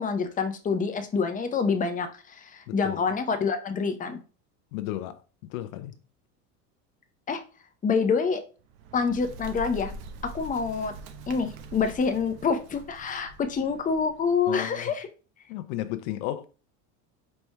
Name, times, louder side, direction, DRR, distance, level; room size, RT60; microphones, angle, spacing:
voice 1, 0.0-4.2 7.3-7.4 7.8-8.4 8.9-9.9 10.2-10.9 11.3-15.1, left 5 dB, 20° left, 0.6 m, -27 dB
voice 2, 2.7-3.0 4.7-5.2 5.5-5.9 14.5-14.9 15.5-16.4, left 14 dB, 65° left, 0.6 m, -33 dB
Bird, 8.6-14.3, right 3 dB, 55° right, 0.8 m, -43 dB
4.4 x 4.3 x 2.2 m
hypercardioid pair, 80°, 45 cm